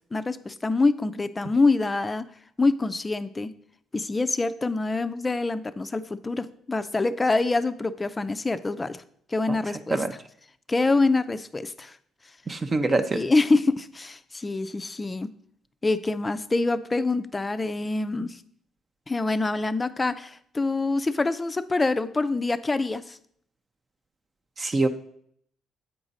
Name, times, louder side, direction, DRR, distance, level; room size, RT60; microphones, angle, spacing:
voice 1, 0.1-2.3 2.6-3.5 3.9-9.0 9.3-10.0 10.7-11.9 13.1-15.3 15.8-18.4 19.1-23.2, left 3 dB, 20° left, 13 dB, 0.4 m, -25 dB
voice 2, 12.5-13.2 24.6-24.9, right 2 dB, 30° right, 8 dB, 0.5 m, -24 dB
8.0 x 4.9 x 4.0 m, 0.65 s
cardioid pair, 95°, 0 cm